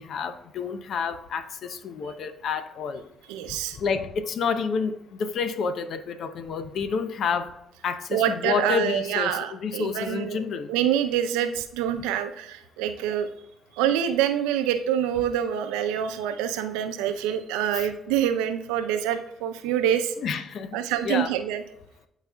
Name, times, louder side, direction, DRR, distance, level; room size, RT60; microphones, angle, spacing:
voice 1, 0.0-3.0 3.8-7.5 7.8-10.7 17.7-17.9 20.2-20.7 21.0-21.3, left 6 dB, 65° left, 11 dB, 0.7 m, -29 dB
voice 2, 3.3-3.8 8.1-10.4 10.7-13.3 13.8-20.1 20.7-21.6, right 10 dB, 85° right, 8 dB, 0.6 m, -26 dB
12.0 x 4.1 x 2.3 m, 0.80 s
supercardioid pair, 55°, 0 cm